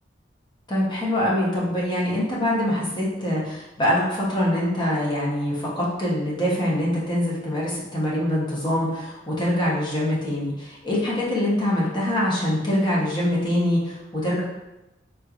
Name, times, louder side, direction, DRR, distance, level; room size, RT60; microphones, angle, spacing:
voice 1, 0.7-14.4, left 1 dB, 25° left, -6 dB, 0.9 m, -24 dB
3.5 x 3.0 x 2.5 m, 0.99 s
head